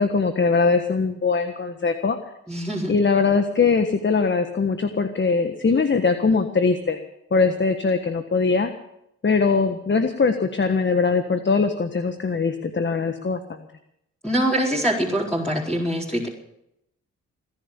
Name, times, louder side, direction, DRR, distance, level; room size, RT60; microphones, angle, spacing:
voice 1, 0.0-2.2 2.9-7.0 7.3-8.7 9.2-13.6, left 4 dB, 35° left, 8 dB, 1.5 m, -21 dB
voice 2, 2.5-3.0 14.2-16.3, right 1 dB, 5° left, -5 dB, 4.4 m, -24 dB
19.5 x 11.0 x 7.0 m, 0.79 s
supercardioid pair, 50°, 32 cm